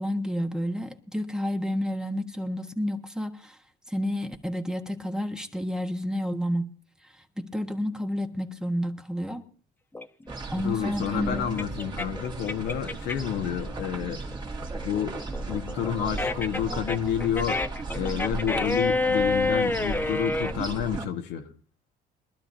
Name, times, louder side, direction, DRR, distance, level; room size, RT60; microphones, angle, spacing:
voice 1, 0.0-3.6 3.9-6.7 7.4-9.4 10.5-11.6, equal, 5° right, 1.3 m, -30 dB
sound 1, 10.0-13.4 13.8-20.5, left 2 dB, 10° left, 0.9 m, -28 dB
sound 2, 10.3-21.1, right 3 dB, 25° right, 2.1 m, -36 dB
voice 2, 10.5-14.2 14.8-15.2 15.5-17.6 17.9-21.5, left 9 dB, 85° left, 1.7 m, -29 dB
22.5 x 12.0 x 2.8 m
cardioid pair, 110°, 17 cm